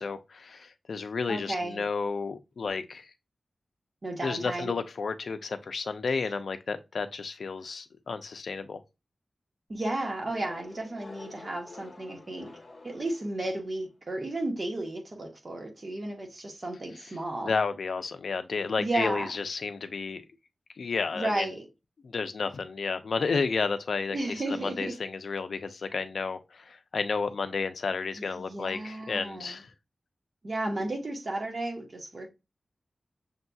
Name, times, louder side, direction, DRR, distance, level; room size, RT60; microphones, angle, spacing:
voice 1, 0.0-3.1 4.2-8.8 16.9-17.2 17.4-20.2 20.8-21.5 22.0-29.7, left 4 dB, 75° left, 0.4 m, -32 dB
voice 2, 1.3-1.8 4.0-4.8 9.7-12.5 12.8-17.5 18.8-19.3 21.1-21.6 24.1-24.9 28.2-29.6 30.4-32.3, right 2 dB, 45° right, 1.1 m, -33 dB
sound 1, 10.3-13.8, left 3 dB, 45° left, 1.0 m, -49 dB
6.4 x 2.7 x 2.3 m
wide cardioid pair, 115°, 0 cm